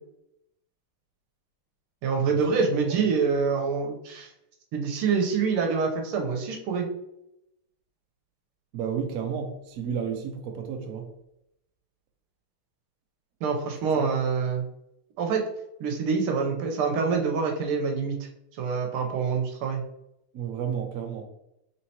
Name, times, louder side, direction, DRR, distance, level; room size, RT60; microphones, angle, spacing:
voice 1, 2.0-4.3 4.7-6.9 13.4-14.6 15.2-15.4 15.8-18.3 18.6-19.8, right 5 dB, 85° right, 2 dB, 1.7 m, -26 dB
voice 2, 8.7-11.1 14.0-14.1 20.3-21.3, right 7 dB, 70° right, 4 dB, 0.8 m, -32 dB
4.3 x 3.6 x 2.8 m, 0.82 s
omnidirectional pair, 2.4 m